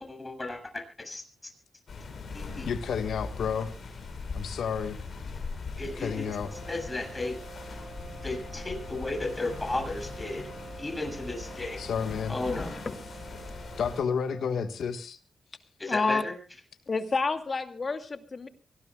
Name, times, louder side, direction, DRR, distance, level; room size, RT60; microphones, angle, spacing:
voice 1, 0.1-1.2 2.3-2.7 5.8-6.3 6.7-7.3 8.2-10.4 10.8-11.8 12.3-12.7 15.8-16.3, left 2 dB, 25° left, 5 dB, 7.7 m, -34 dB
sound 1, 1.9-14.0, left 4 dB, 65° left, 5.9 m, -40 dB
voice 2, 2.6-3.7 4.3-5.0 6.0-6.5 11.8-12.4 13.8-15.2, left 6 dB, 80° left, 9 dB, 1.6 m, -31 dB
sound 2, 5.9-14.8, right 6 dB, 60° right, 3.3 m, -47 dB
voice 3, 12.9-13.2 15.9-16.2 16.9-18.5, left 4 dB, 50° left, 7 dB, 2.4 m, -29 dB
24.5 x 19.5 x 2.4 m, 0.34 s
cardioid pair, 50°, 0 cm